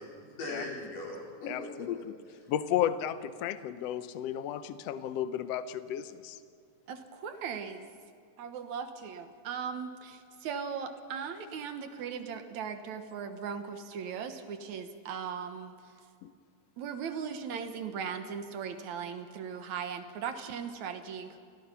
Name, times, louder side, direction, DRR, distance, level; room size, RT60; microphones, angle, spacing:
voice 1, 0.0-2.0, left 2 dB, 70° left, -3 dB, 6.0 m, -40 dB
voice 2, 1.5-2.0 2.5-6.4 16.2-16.3, left 10 dB, 90° left, 12 dB, 1.4 m, -33 dB
voice 3, 6.9-7.9 8.4-15.7 16.8-21.4, right 6 dB, 65° right, 7 dB, 2.3 m, -38 dB
29.5 x 18.5 x 5.6 m, 2.2 s
omnidirectional pair, 4.0 m